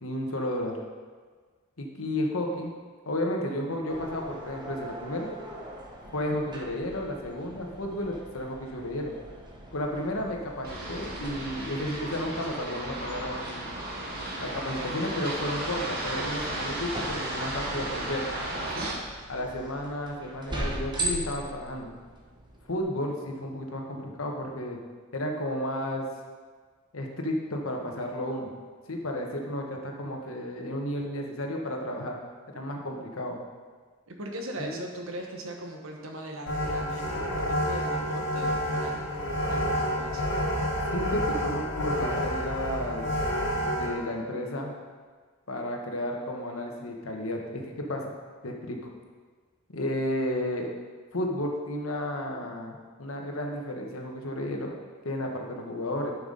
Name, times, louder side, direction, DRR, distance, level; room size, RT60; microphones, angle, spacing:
voice 1, 0.0-0.7 1.8-2.7 3.0-5.3 6.1-9.1 9.7-13.7 14.4-18.2 18.7-18.9 19.3-21.9 22.7-24.8 25.1-26.1 26.9-28.5 28.9-32.1 32.5-33.4 34.6-34.8 40.9-43.1 43.7-44.7 45.5-48.1 48.4-48.8 49.7-50.7 51.1-54.7 55.0-56.1, left 1 dB, 90° left, 1 dB, 1.3 m, -32 dB
sound 1, 3.9-22.8, right 1 dB, 20° right, 1.1 m, -41 dB
sound 2, 10.6-18.9, right 1 dB, 45° right, 1.8 m, -34 dB
voice 2, 34.1-40.2, right 1 dB, 80° right, 1 dB, 1.3 m, -39 dB
sound 3, 36.5-43.9, equal, 65° left, 1.6 m, -29 dB
11.0 x 5.9 x 4.0 m, 1.5 s
head